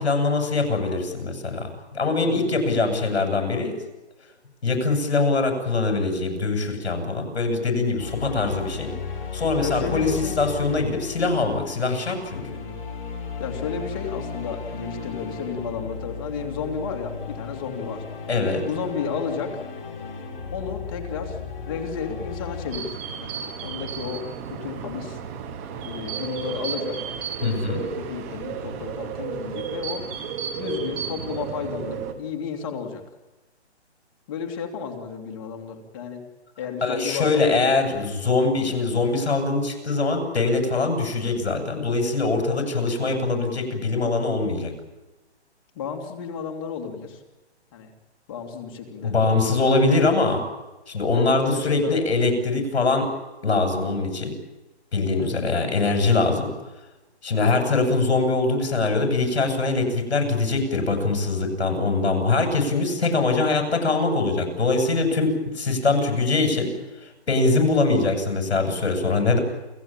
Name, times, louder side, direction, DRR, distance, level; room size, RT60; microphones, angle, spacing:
voice 1, 0.0-3.8 4.6-8.9 9.3-10.1 10.4-12.4 18.3-18.6 27.4-27.8 36.8-44.7 49.0-50.4 50.9-53.1 53.4-54.3 54.9-56.5 57.2-66.7 67.3-69.4, left 3 dB, 65° left, 5 dB, 7.9 m, -23 dB
voice 2, 2.2-2.5 9.6-10.4 12.3-12.8 13.4-18.0 18.6-19.6 20.5-21.4 21.7-25.2 25.8-27.0 27.4-30.1 30.6-33.0 34.3-36.2 36.6-37.8 38.7-38.9 45.7-47.2 47.7-47.9 48.3-49.1 49.6-49.9 51.1-51.9 52.7-53.0 55.2-55.4 57.3-57.6, left 6 dB, 20° left, 3 dB, 2.7 m, -33 dB
sound 1, 8.0-22.7, left 4 dB, 45° left, 6.4 m, -35 dB
sound 2, 22.7-32.1, right 7 dB, 15° right, 1.2 m, -33 dB
29.5 x 16.5 x 8.9 m, 1.1 s
hypercardioid pair, 170°, 34 cm